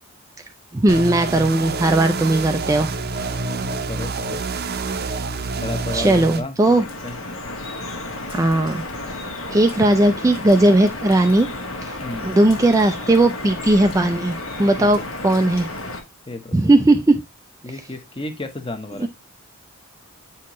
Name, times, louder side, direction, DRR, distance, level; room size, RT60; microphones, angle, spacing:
voice 1, 0.7-2.9 5.9-6.8 8.3-8.8 9.5-11.5 11.8-12.0 12.2-15.7 16.5-17.2 19.0-19.1, right 2 dB, 15° right, 0.3 m, -17 dB
sound 1, 0.9-6.4, right 3 dB, 45° right, 0.7 m, -27 dB
voice 2, 3.6-4.4 5.6-7.2 12.0-12.3 14.8-15.0 16.3-16.8 17.6-19.1, left 2 dB, 25° left, 0.8 m, -33 dB
Drip, 6.6-16.0, left 2 dB, 65° left, 1.3 m, -32 dB
8.3 x 4.3 x 3.0 m
head